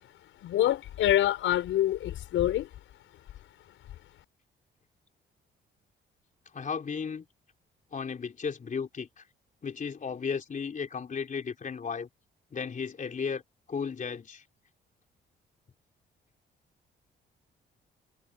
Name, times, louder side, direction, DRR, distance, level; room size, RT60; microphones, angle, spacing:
voice 1, 0.4-2.7, left 12 dB, 80° left, 5.6 m, -26 dB
voice 2, 6.5-7.3 7.9-9.3 9.6-12.1 12.5-13.4 13.7-14.4, left 6 dB, 40° left, 4.2 m, -34 dB
cardioid pair, 90°, 20 cm